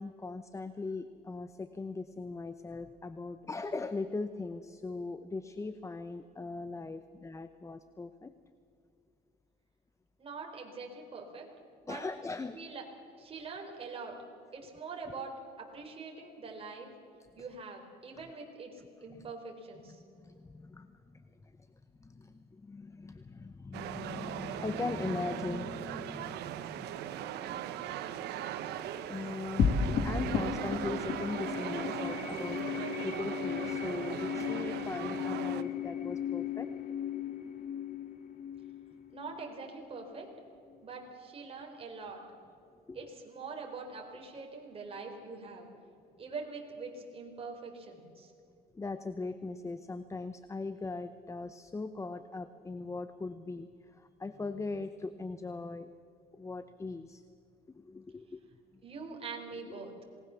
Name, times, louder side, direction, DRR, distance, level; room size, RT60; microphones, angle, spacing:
voice 1, 0.0-8.3 11.9-12.6 20.2-21.2 21.6-21.7 22.0-27.6 29.1-36.7 42.9-43.0 48.7-53.7 54.0-55.9 56.3-57.2 57.8-58.4, left 3 dB, 15° left, 12 dB, 0.8 m, -40 dB
voice 2, 10.2-11.5 11.8-12.0 12.5-12.8 13.2-14.2 14.5-15.3 15.6-16.9 17.3-18.7 19.0-20.0 39.1-40.3 40.8-42.2 42.9-45.7 46.2-48.3 58.8-59.9, right 4 dB, 35° right, 1 dB, 4.4 m, -44 dB
sound 1, 23.7-35.6, right 11 dB, 80° right, 1.2 m, -39 dB
sound 2, 28.5-34.1, right 6 dB, 65° right, 4.4 m, -54 dB
sound 3, 29.6-40.2, left 7 dB, 60° left, 2.2 m, -35 dB
27.0 x 19.0 x 7.1 m, 2.4 s
cardioid pair, 110°, 17 cm